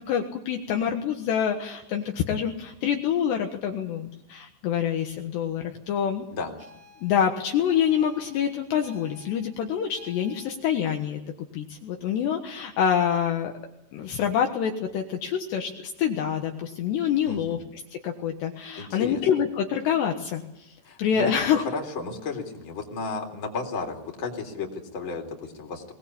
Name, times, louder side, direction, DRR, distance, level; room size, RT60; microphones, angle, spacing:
voice 1, 0.0-6.3 7.0-11.2 11.5-13.5 13.9-17.6 17.9-21.6, left 8 dB, 70° left, 2 dB, 3.3 m, -26 dB
sound 1, 6.6-10.5, left 2 dB, 85° right, 6.5 m, -53 dB
voice 2, 17.2-17.6 18.8-19.2 20.9-25.9, left 4 dB, 30° left, 2 dB, 3.7 m, -33 dB
22.0 x 19.5 x 8.7 m, 0.88 s
omnidirectional pair, 5.6 m